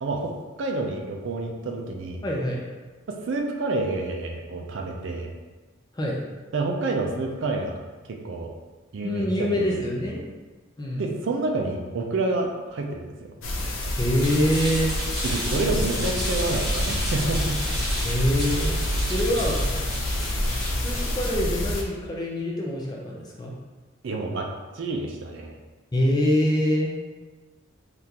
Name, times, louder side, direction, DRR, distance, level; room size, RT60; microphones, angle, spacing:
voice 1, 0.0-0.3 0.6-2.2 3.1-5.3 6.5-7.8 8.1-8.5 8.9-9.8 11.0-13.3 15.2-17.6 24.0-24.5 24.7-25.6, right 2 dB, 60° right, 1 dB, 0.4 m, -28 dB
voice 2, 2.2-2.6 5.9-6.2 9.0-10.2 10.8-11.0 13.9-14.9 18.0-19.6 20.7-23.5 25.9-26.9, equal, 20° left, -3 dB, 0.4 m, -25 dB
sound 1, 13.4-21.8, left 1 dB, 75° left, 0.5 m, -27 dB
sound 2, 14.2-21.4, equal, ahead, 1.3 m, -33 dB
3.6 x 2.4 x 2.8 m, 1.3 s
head